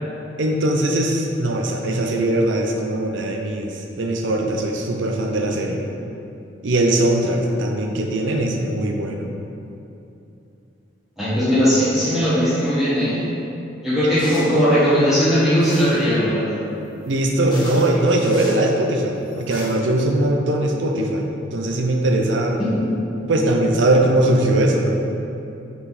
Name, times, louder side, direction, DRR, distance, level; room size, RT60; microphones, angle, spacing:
voice 1, 0.4-5.8 6.6-9.3 17.1-22.6 23.3-25.0, right 1 dB, 80° right, 2 dB, 0.6 m, -20 dB
voice 2, 11.2-13.3 13.8-16.5 22.6-23.0, equal, ahead, -12 dB, 1.2 m, -18 dB
sound 1, 14.2-14.7 15.6-16.1 17.0-17.1 17.5-18.6 19.3-19.7, left 1 dB, 25° left, 1.3 m, -37 dB
5.5 x 4.7 x 4.1 m, 2.8 s
head